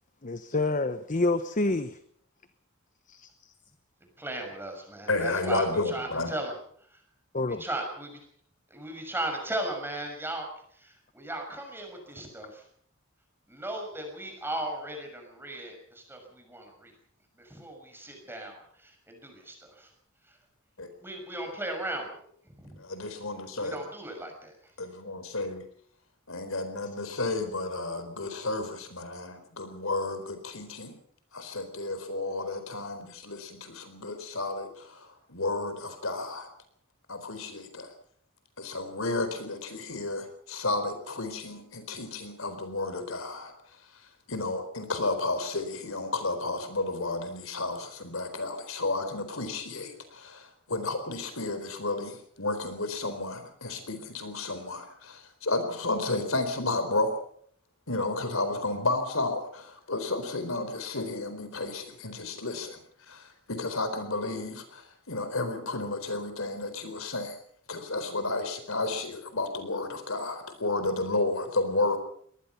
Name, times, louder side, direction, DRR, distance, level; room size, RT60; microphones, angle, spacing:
voice 1, 0.2-2.0 3.1-3.5 7.3-7.6, left 2 dB, 40° left, 10 dB, 1.0 m, -28 dB
voice 2, 4.2-6.5 7.4-8.1 8.7-10.5 10.8-12.6 13.5-16.9 17.4-19.9 21.0-22.3 22.6-22.8 23.3-24.5, right 1 dB, 10° right, 3 dB, 6.1 m, -37 dB
voice 3, 5.1-6.3 20.8-20.9 22.8-23.8 24.8-25.6 26.3-30.9 31.3-36.5 37.1-37.9 38.6-43.5 44.3-57.1 57.9-62.8 63.1-67.4 67.7-72.0, left 2 dB, 75° left, 8 dB, 4.3 m, -32 dB
23.5 x 19.0 x 5.9 m, 0.62 s
head